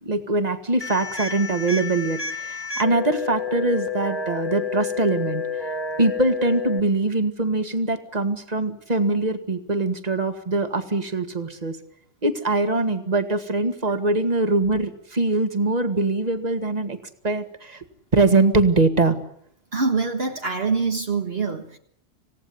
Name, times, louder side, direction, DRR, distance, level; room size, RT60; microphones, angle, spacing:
voice 1, 0.0-5.4 6.0-11.8 12.2-17.0 17.2-17.8 18.1-19.2, right 2 dB, 35° right, 8 dB, 2.2 m, -22 dB
sound 1, 0.8-6.8, left 5 dB, 20° left, 1.5 m, -30 dB
voice 2, 19.7-21.8, right 4 dB, 55° right, 3 dB, 1.8 m, -24 dB
27.0 x 17.5 x 9.6 m, 0.69 s
omnidirectional pair, 1.2 m